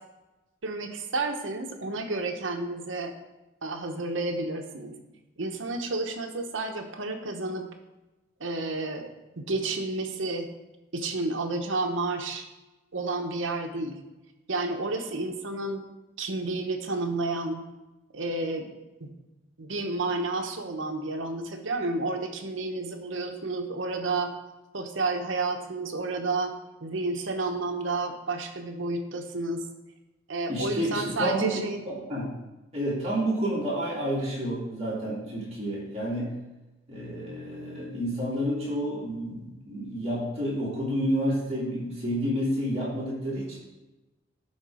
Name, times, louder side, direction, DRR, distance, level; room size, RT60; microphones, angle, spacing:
voice 1, 0.6-3.1 3.6-4.9 5.4-7.7 8.4-9.1 9.4-10.5 10.9-12.5 12.9-14.0 14.5-15.8 16.2-17.6 18.1-18.7 19.0-19.1 19.6-24.4 24.7-26.5 26.8-29.7 30.3-31.8, right 2 dB, 70° right, 4 dB, 1.0 m, -31 dB
voice 2, 30.5-32.4 32.7-36.4 36.9-43.6, equal, 30° right, -7 dB, 3.0 m, -30 dB
11.0 x 3.9 x 4.9 m, 1.0 s
head